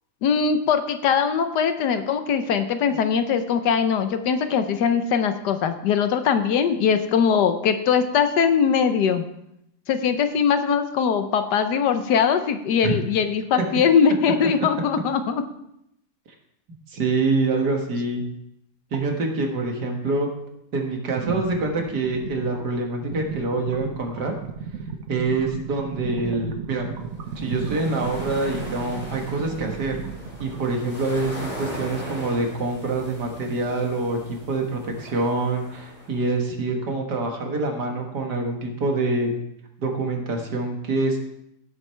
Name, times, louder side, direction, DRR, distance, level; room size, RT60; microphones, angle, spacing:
voice 1, 0.2-9.2 9.9-15.4, left 6 dB, 90° left, 9 dB, 1.4 m, -21 dB
voice 2, 16.9-18.2 18.9-20.3 20.7-24.3 25.1-26.9 27.4-30.0 30.4-34.2 34.5-39.3 39.8-41.2, right 3 dB, 80° right, 2 dB, 2.1 m, -25 dB
sound 1, 18.9-19.1 21.2-31.0 32.9-33.5 34.3-34.4 35.0-35.1, right 6 dB, 60° right, 1.3 m, -35 dB
sound 2, 27.1-36.4, equal, 20° left, 2.8 m, -39 dB
16.5 x 7.5 x 3.3 m, 0.78 s
omnidirectional pair, 1.7 m